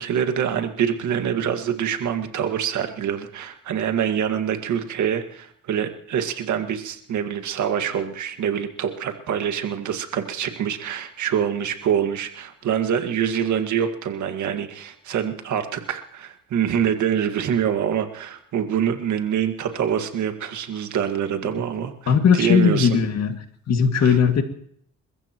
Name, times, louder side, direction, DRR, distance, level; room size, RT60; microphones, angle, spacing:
voice 1, 0.0-22.1 22.4-22.9 24.0-24.2, right 8 dB, 75° right, 6 dB, 1.9 m, -25 dB
voice 2, 22.1-23.4 23.7-24.4, left 6 dB, 60° left, 5 dB, 2.1 m, -18 dB
29.5 x 14.5 x 3.0 m, 0.66 s
cardioid pair, 90°, 30 cm